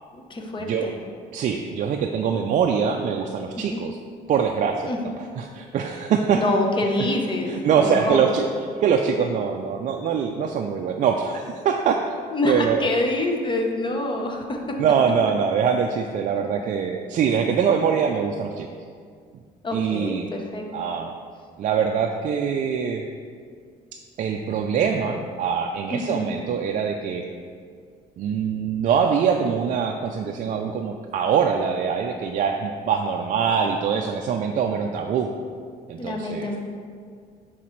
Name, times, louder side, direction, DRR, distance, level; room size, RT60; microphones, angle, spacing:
voice 1, 0.1-1.0 3.6-3.8 4.9-5.0 6.3-8.3 12.3-14.8 19.6-20.7 25.9-26.2 36.0-36.6, left 1 dB, 30° left, 2 dB, 0.9 m, -26 dB
voice 2, 1.3-4.0 4.3-4.9 5.4-6.4 7.5-8.4 8.8-12.2 12.5-12.9 14.8-18.7 19.7-20.2 20.7-21.1 21.6-23.0 24.2-27.2 28.2-35.3 35.9-36.5, right 7 dB, 50° right, 3 dB, 0.4 m, -23 dB
10.0 x 3.9 x 3.2 m, 2.1 s
cardioid pair, 110°, 17 cm